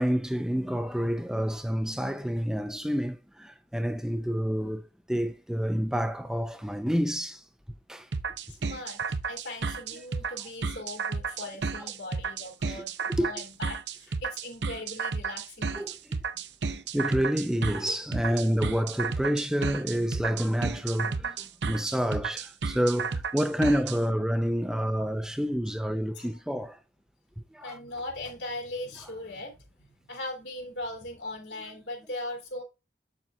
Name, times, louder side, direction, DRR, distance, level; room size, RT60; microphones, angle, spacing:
voice 1, 0.0-7.4 7.9-8.1 10.3-10.4 11.8-11.9 12.7-12.8 13.2-13.3 15.7-16.0 16.9-26.8 27.5-27.8, equal, 5° right, 0.4 m, -28 dB
sound 1, 8.1-24.0, right 5 dB, 80° right, 0.7 m, -32 dB
voice 2, 8.5-15.9 16.7-16.8 24.9-25.1 26.1-26.3 27.6-32.6, left 2 dB, 80° left, 3.1 m, -39 dB
7.8 x 7.1 x 2.3 m
head